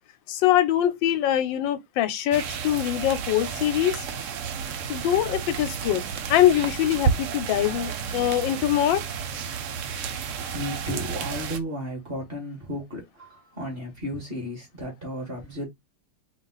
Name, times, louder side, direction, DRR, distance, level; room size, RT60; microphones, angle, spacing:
voice 1, 0.3-4.1 4.9-6.0 6.3-9.0, left 12 dB, 85° left, 1.4 m, -23 dB
sound 1, 2.3-11.6, right 6 dB, 80° right, 0.7 m, -31 dB
voice 2, 10.5-15.7, equal, 30° right, 1.9 m, -34 dB
4.7 x 2.4 x 3.9 m
omnidirectional pair, 2.0 m